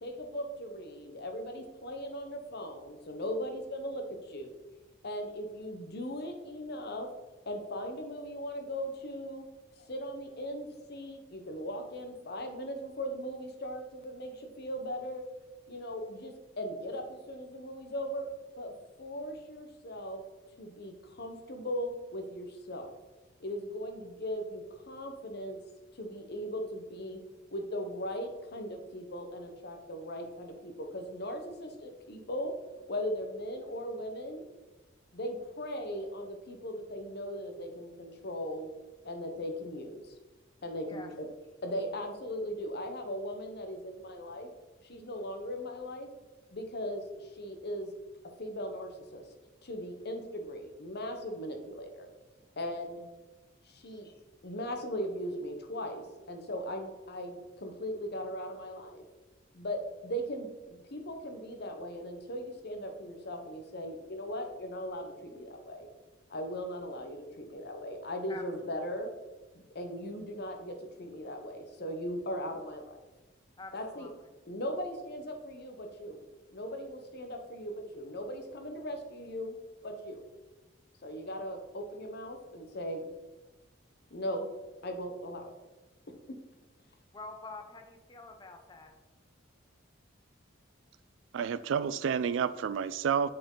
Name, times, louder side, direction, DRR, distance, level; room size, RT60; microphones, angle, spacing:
voice 1, 0.0-4.6 5.0-7.1 7.5-9.4 9.8-15.2 15.7-18.3 18.6-18.7 19.0-20.2 20.6-22.9 23.4-25.6 26.0-27.2 27.5-32.5 32.9-34.4 35.1-38.7 39.0-40.1 40.6-41.3 41.6-44.5 44.8-46.1 46.5-47.9 48.4-49.2 49.6-52.1 52.6-53.0 53.6-54.1 54.4-59.0 59.5-65.9 66.3-69.1 69.7-73.0 73.7-74.1 74.5-76.2 76.5-79.6 79.8-80.2 81.0-83.1 84.1-84.5 84.8-85.5 86.3-86.4, equal, 55° left, 5 dB, 0.9 m, -38 dB
voice 2, 73.6-74.1 87.1-88.9, left 3 dB, 20° left, 4 dB, 0.7 m, -47 dB
voice 3, 91.3-93.3, right 7 dB, 65° right, 15 dB, 0.3 m, -30 dB
7.5 x 4.5 x 3.8 m, 1.1 s
head